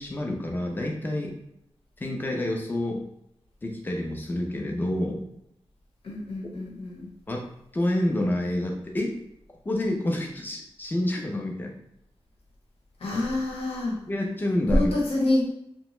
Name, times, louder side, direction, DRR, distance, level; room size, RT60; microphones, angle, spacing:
voice 1, 0.0-1.3 2.0-3.0 3.6-5.2 7.3-7.4 7.7-9.1 9.7-11.7 13.1-13.2 14.1-14.9, left 1 dB, 20° left, 1 dB, 0.5 m, -28 dB
voice 2, 6.0-7.1 13.0-14.0 14.7-15.5, left 1 dB, 75° left, -3 dB, 0.9 m, -26 dB
2.8 x 2.1 x 3.0 m, 0.76 s
wide cardioid pair, 145°, 10 cm